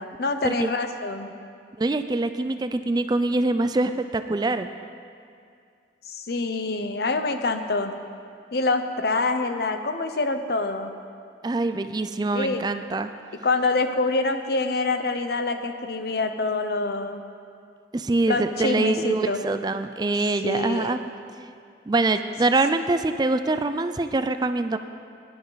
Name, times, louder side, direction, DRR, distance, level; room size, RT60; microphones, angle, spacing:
voice 1, 0.0-1.3 6.0-7.9 8.5-10.9 12.3-12.7 13.3-17.2 18.3-19.4 20.4-21.0, left 3 dB, 60° left, 7 dB, 0.8 m, -26 dB
voice 2, 1.8-4.7 11.4-13.1 17.9-21.0 21.9-24.8, right 2 dB, 20° right, 9 dB, 0.3 m, -24 dB
19.0 x 10.5 x 4.0 m, 2.3 s
head